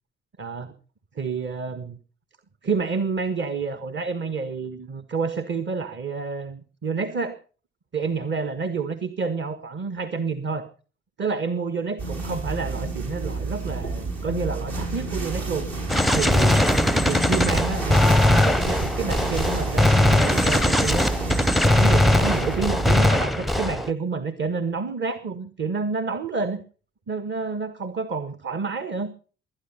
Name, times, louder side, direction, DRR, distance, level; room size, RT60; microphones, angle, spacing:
voice 1, 0.4-0.7 1.1-2.0 2.6-7.3 7.9-10.7 11.2-15.7 16.1-16.6 17.0-21.1 21.6-26.6 27.1-29.1, right 4 dB, 35° right, 12 dB, 1.4 m, -29 dB
sound 1, 12.0-23.0, right 3 dB, 60° right, 7.0 m, -30 dB
Gunshot gunfire, 15.9-23.9, left 1 dB, ahead, 0.7 m, -20 dB
22.0 x 9.9 x 5.7 m, 0.40 s
figure-of-eight pair, 45°, 31 cm